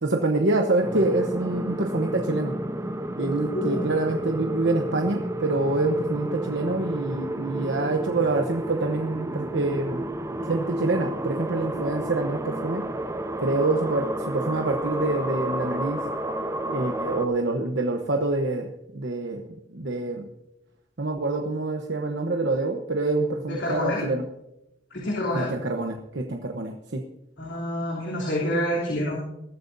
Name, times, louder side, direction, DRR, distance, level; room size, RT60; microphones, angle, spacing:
voice 1, 0.0-2.5 3.2-10.0 10.4-12.8 13.4-16.0 16.7-19.4 19.7-20.2 21.0-24.2 25.3-27.0, right 2 dB, 70° right, 3 dB, 1.0 m, -26 dB
sound 1, 0.8-17.3, right 1 dB, 15° right, 0.9 m, -31 dB
voice 2, 3.5-3.9 23.5-24.0 24.9-25.5 27.4-29.2, left 1 dB, 85° left, -4 dB, 3.2 m, -27 dB
21.5 x 13.0 x 2.7 m, 0.89 s
head